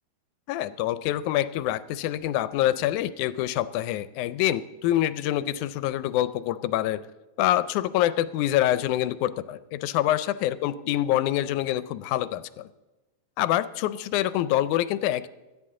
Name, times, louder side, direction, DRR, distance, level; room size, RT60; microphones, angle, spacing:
voice 1, 0.5-7.0 7.4-12.7 13.4-15.3, left 13 dB, 80° left, 15 dB, 1.9 m, -26 dB
18.0 x 13.0 x 3.7 m, 1.1 s
omnidirectional pair, 3.6 m